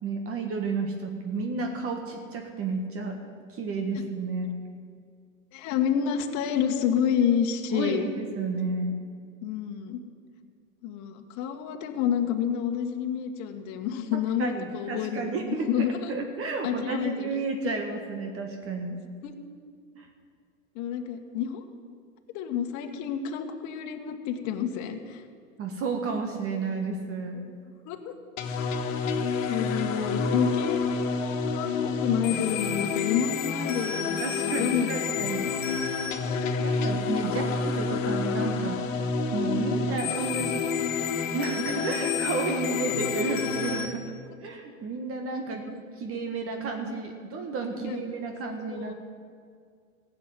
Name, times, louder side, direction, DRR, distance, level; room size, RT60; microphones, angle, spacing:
voice 1, 0.0-3.2 3.5-4.5 7.7-9.0 14.4-19.0 19.9-20.1 25.6-27.5 34.2-35.5 36.6-40.6 41.0-44.0 44.4-45.6 46.0-48.9, right 4 dB, 35° right, 4 dB, 1.7 m, -32 dB
voice 2, 5.5-8.1 9.4-10.0 10.8-16.1 16.6-17.3 17.6-17.7 19.2-19.3 20.7-21.6 22.3-25.2 27.8-28.1 29.0-29.1 29.5-35.0 35.4-35.5 39.9-40.0 42.0-42.1 42.5-43.1 45.7-45.8 47.8-48.0 48.7-48.9, left 8 dB, 45° left, 4 dB, 1.5 m, -29 dB
sound 1, 28.4-43.9, left 5 dB, 65° left, 1.6 m, -29 dB
15.5 x 7.6 x 9.4 m, 2.1 s
hypercardioid pair, 100°, 40 cm